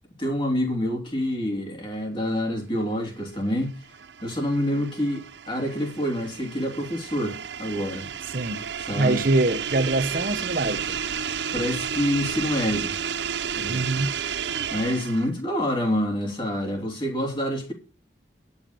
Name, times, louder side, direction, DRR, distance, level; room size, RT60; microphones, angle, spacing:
voice 1, 0.2-3.8 4.2-8.1 8.8-9.2 11.5-13.0 13.6-14.0 14.7-17.7, equal, 25° left, 3.3 m, -27 dB
sound 1, 3.5-15.4, right 7 dB, 70° right, 0.7 m, -32 dB
voice 2, 8.3-8.6 9.0-11.0 13.7-14.2, right 2 dB, 50° right, 1.0 m, -24 dB
11.0 x 7.3 x 6.8 m
head